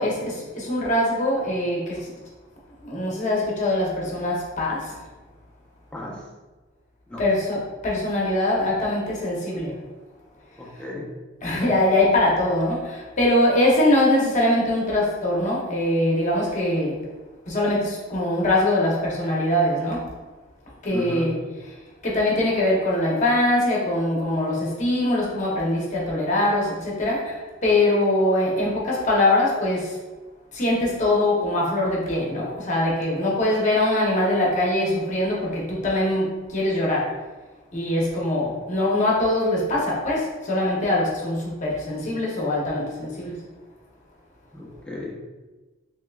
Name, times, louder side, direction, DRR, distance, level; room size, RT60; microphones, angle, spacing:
voice 1, 0.0-2.0 2.8-4.9 7.2-9.7 11.4-16.9 17.5-20.0 20.8-21.3 22.0-27.4 27.6-29.9 30.5-37.1 37.7-43.3, left 1 dB, 40° left, -4 dB, 0.8 m, -22 dB
voice 2, 10.6-11.1 20.9-21.3 44.5-45.2, left 1 dB, 5° left, -4 dB, 0.5 m, -34 dB
3.5 x 2.9 x 2.3 m, 1.2 s
head